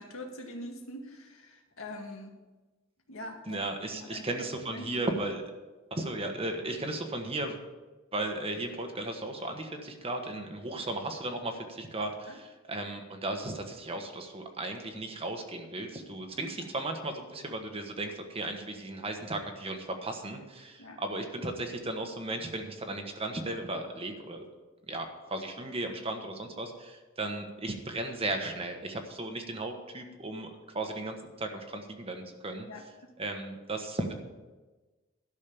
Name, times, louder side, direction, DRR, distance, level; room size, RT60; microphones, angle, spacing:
voice 1, 0.0-2.4 3.1-3.6 3.9-5.0 12.3-12.4 16.6-16.7 20.8-21.0 32.7-32.9, left 1 dB, 85° left, 2 dB, 2.0 m, -43 dB
voice 2, 3.5-5.4 5.9-7.6 8.1-24.4 24.9-32.7 33.2-34.1, right 2 dB, 30° right, 4 dB, 1.3 m, -36 dB
12.5 x 6.4 x 6.9 m, 1.2 s
head